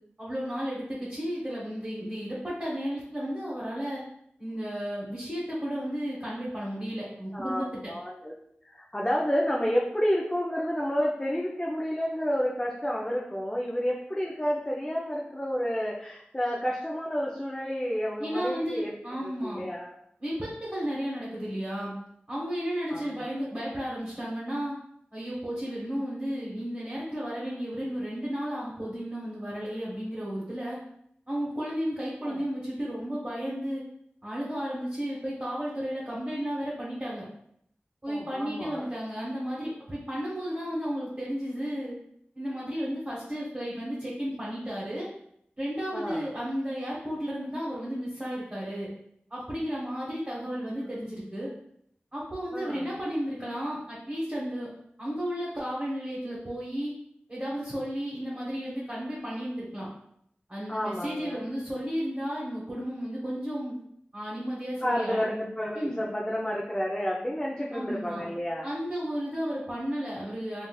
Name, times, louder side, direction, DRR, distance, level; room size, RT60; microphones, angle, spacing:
voice 1, 0.2-4.0 4.4-7.9 18.2-19.6 20.2-21.9 22.3-24.7 25.1-30.8 31.3-33.8 34.2-37.2 38.0-41.9 42.3-45.1 45.6-48.9 49.3-51.5 52.1-54.7 55.0-57.0 57.3-59.9 60.5-63.8 64.1-65.2 65.7-66.0 67.7-68.2 68.6-70.7, equal, 25° right, -8 dB, 1.0 m, -33 dB
voice 2, 7.3-8.3 8.6-19.9 22.9-23.3 32.2-32.4 38.1-38.8 45.9-46.3 50.5-50.9 52.5-53.0 60.7-61.4 64.8-68.7, equal, 20° left, -4 dB, 0.5 m, -30 dB
3.7 x 2.5 x 2.3 m, 0.73 s
wide cardioid pair, 50°, 4 cm